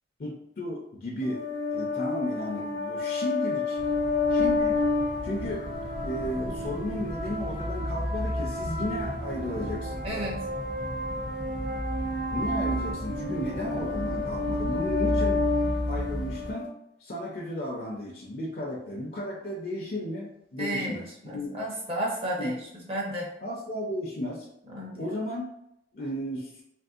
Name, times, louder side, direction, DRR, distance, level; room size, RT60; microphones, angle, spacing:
voice 1, 0.2-1.4 1.7-3.8 4.3-4.8 5.2-5.7 6.0-10.2 12.3-16.7 17.0-21.5 22.4-22.6 23.4-24.5 25.0-25.5 25.9-26.5, left 1 dB, 55° left, -2 dB, 0.5 m, -34 dB
sound 1, 1.2-16.7, left 3 dB, 75° right, 0.9 m, -30 dB
sound 2, 3.8-16.5, equal, 5° right, 0.4 m, -35 dB
voice 2, 10.0-10.4 20.6-22.5 22.9-23.3 24.7-25.1, right 1 dB, 35° right, -3 dB, 0.8 m, -32 dB
3.0 x 2.6 x 2.4 m, 0.77 s
head